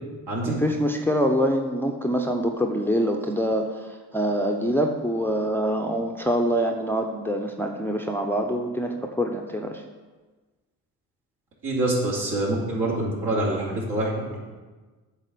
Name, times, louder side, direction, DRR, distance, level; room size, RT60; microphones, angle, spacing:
voice 1, 0.4-9.8, equal, 5° left, 3 dB, 0.7 m, -25 dB
voice 2, 11.6-14.4, right 1 dB, 60° right, -5 dB, 3.0 m, -26 dB
8.3 x 4.1 x 6.7 m, 1.3 s
hypercardioid pair, 50°, 45 cm